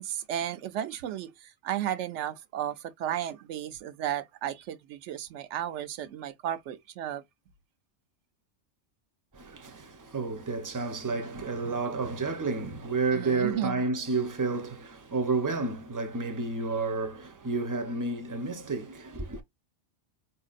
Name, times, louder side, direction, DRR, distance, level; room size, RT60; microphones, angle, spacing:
voice 1, 0.0-7.2 13.1-13.8, right 11 dB, 80° right, 0.9 m, -34 dB
voice 2, 9.3-19.4, right 3 dB, 25° right, 0.5 m, -31 dB
4.6 x 2.7 x 2.4 m
omnidirectional pair, 1.2 m